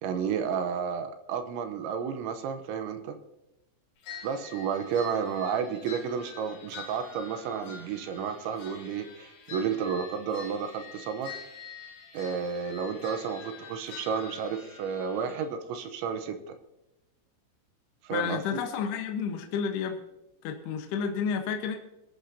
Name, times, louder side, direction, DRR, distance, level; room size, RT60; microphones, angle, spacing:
voice 1, 0.0-3.2 4.2-11.4 12.1-16.5 18.0-18.6, right 6 dB, 80° right, 8 dB, 2.9 m, -32 dB
sound 1, 4.0-15.4, left 5 dB, 85° left, 6.8 m, -46 dB
voice 2, 18.1-20.0 20.4-21.8, left 7 dB, 70° left, 4 dB, 2.7 m, -31 dB
23.0 x 12.0 x 2.8 m, 0.95 s
omnidirectional pair, 6.0 m